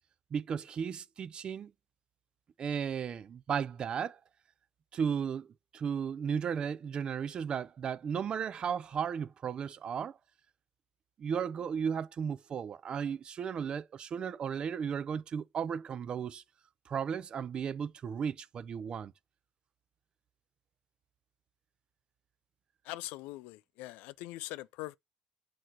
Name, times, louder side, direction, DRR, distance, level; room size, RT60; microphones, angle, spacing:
voice 1, 0.3-1.7 2.6-4.2 4.9-5.5 5.7-10.2 11.2-16.4 16.9-19.1, right 7 dB, 35° right, 0.5 m, -35 dB
voice 2, 22.8-25.0, left 17 dB, 85° left, 0.4 m, -42 dB
7.8 x 2.9 x 4.5 m
cardioid pair, 125°, 3 cm